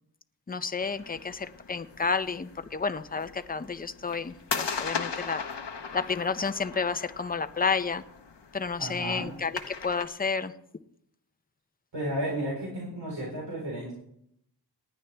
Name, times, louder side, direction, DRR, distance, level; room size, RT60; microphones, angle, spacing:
voice 1, 0.5-5.4 5.9-8.0 8.5-10.5, left 5 dB, 20° left, 11 dB, 0.6 m, -31 dB
sound 1, 0.8-10.0, left 5 dB, 80° left, 1.1 m, -39 dB
voice 2, 8.8-9.3 11.9-13.9, right 1 dB, 85° right, -5 dB, 4.1 m, -33 dB
19.0 x 10.5 x 3.4 m, 0.74 s
wide cardioid pair, 80°, 41 cm